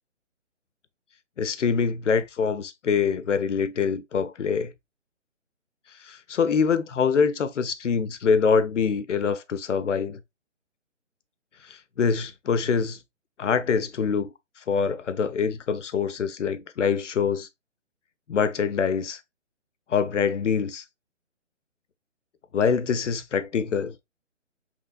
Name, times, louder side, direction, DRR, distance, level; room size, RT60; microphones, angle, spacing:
voice 1, 1.4-4.7 6.0-10.2 11.7-13.0 13.4-14.3 14.7-17.5 18.3-19.2 19.9-20.8 22.5-23.9, left 6 dB, 70° left, 0.5 m, -24 dB
3.1 x 2.5 x 2.3 m
figure-of-eight pair, 140°, 38 cm